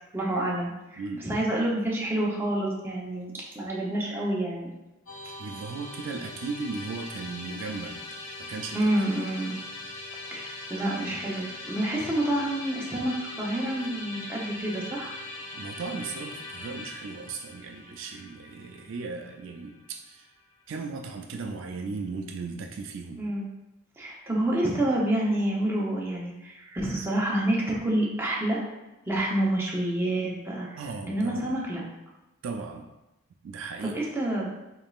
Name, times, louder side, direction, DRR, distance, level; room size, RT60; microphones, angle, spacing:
voice 1, 0.1-4.7 8.7-9.6 10.3-15.1 23.2-23.5 24.0-28.6 29.1-30.8 31.1-31.8 33.8-34.5, right 1 dB, 10° right, -4 dB, 0.7 m, -28 dB
voice 2, 1.0-1.3 5.4-8.0 8.4-8.9 15.5-20.3 20.7-23.2 30.7-31.6 32.4-32.9 33.4-34.0, right 4 dB, 65° right, 3 dB, 0.3 m, -36 dB
Musical instrument, 5.1-20.2, left 2 dB, 75° left, 0.8 m, -41 dB
3.9 x 3.5 x 2.4 m, 0.99 s
head